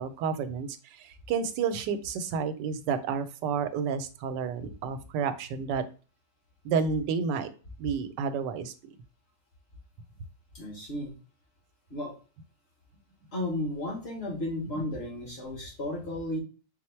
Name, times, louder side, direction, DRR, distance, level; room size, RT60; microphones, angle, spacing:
voice 1, 0.0-5.8 6.6-7.5 7.8-8.7, right 6 dB, 90° right, 11 dB, 1.2 m, -30 dB
voice 2, 10.5-11.1 11.9-12.1 13.3-16.4, left 1 dB, 40° left, -1 dB, 1.3 m, -33 dB
4.3 x 2.0 x 4.3 m, 0.36 s
omnidirectional pair, 1.8 m